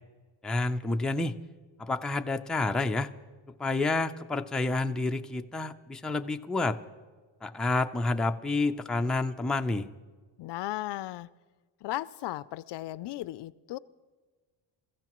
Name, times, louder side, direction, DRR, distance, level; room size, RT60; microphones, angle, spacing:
voice 1, 0.4-1.4 1.8-3.1 3.6-6.8 7.4-9.9, left 2 dB, ahead, 4 dB, 0.5 m, -29 dB
voice 2, 10.4-11.3 11.8-13.8, left 15 dB, 60° left, 17 dB, 0.5 m, -36 dB
28.0 x 15.0 x 3.0 m, 1.4 s
cardioid pair, 110°, 47 cm